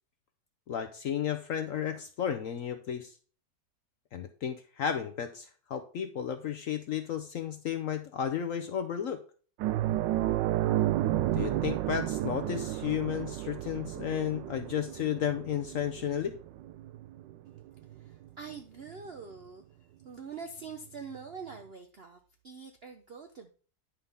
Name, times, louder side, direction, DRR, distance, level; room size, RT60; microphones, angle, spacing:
voice 1, 0.7-3.1 4.1-9.2 11.3-16.3, left 9 dB, 65° left, 8 dB, 0.8 m, -33 dB
sound 1, 9.6-18.5 18.9-19.1 21.1-21.2, right 14 dB, 85° right, 1.2 m, -32 dB
voice 2, 17.9-19.6 20.0-23.5, right 5 dB, 65° right, 6 dB, 0.6 m, -44 dB
10.5 x 5.5 x 3.4 m, 0.41 s
omnidirectional pair, 1.9 m